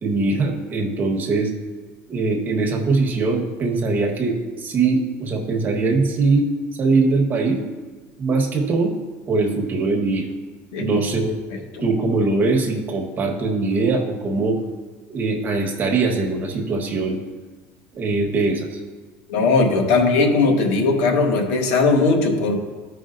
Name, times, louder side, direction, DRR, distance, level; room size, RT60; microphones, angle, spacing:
voice 1, 0.0-1.5 2.1-6.5 6.8-7.6 8.2-8.9 9.3-10.3 10.8-11.3 11.8-14.6 15.1-17.2 17.9-18.8, right 3 dB, 25° right, 1 dB, 1.2 m, -21 dB
voice 2, 19.3-22.6, left 3 dB, 75° left, 3 dB, 1.3 m, -18 dB
14.5 x 5.0 x 2.6 m, 1.3 s
cardioid pair, 150°, 7 cm